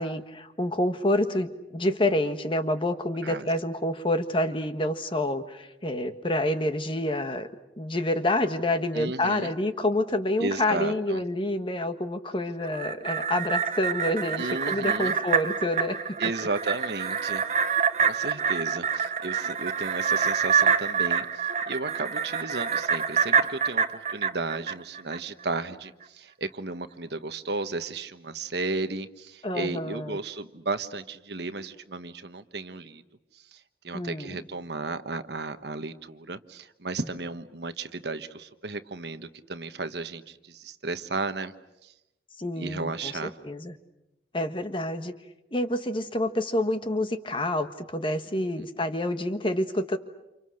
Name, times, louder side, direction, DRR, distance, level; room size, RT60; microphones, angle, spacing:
voice 1, 0.0-7.5 7.8-16.2 29.4-30.2 33.9-34.4 42.4-43.7 44.3-45.1 45.5-50.0, left 1 dB, 30° left, 8 dB, 1.5 m, -28 dB
voice 2, 8.9-9.5 10.4-11.2 14.4-15.2 16.2-17.4 17.7-21.3 21.7-33.0 33.3-41.5 41.8-41.9 42.6-43.3 48.3-48.7, right 3 dB, 65° right, 10 dB, 1.3 m, -34 dB
sound 1, 12.6-25.2 25.6-25.7, right 6 dB, 40° right, 1.2 m, -26 dB
29.5 x 28.5 x 6.5 m, 0.91 s
head